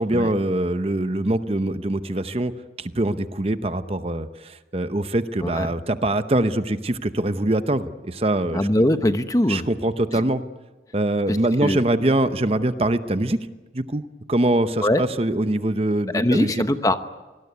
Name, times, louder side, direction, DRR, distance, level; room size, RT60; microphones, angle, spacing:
voice 1, 0.0-2.5 2.8-8.6 9.5-10.4 10.9-13.4 13.7-14.0 14.3-16.6, right 1 dB, 35° right, 11 dB, 0.8 m, -23 dB
voice 2, 8.5-9.7 11.3-11.8 14.8-15.0 16.1-17.0, left 1 dB, 20° left, 9 dB, 1.0 m, -21 dB
25.0 x 19.5 x 9.5 m, 1.2 s
head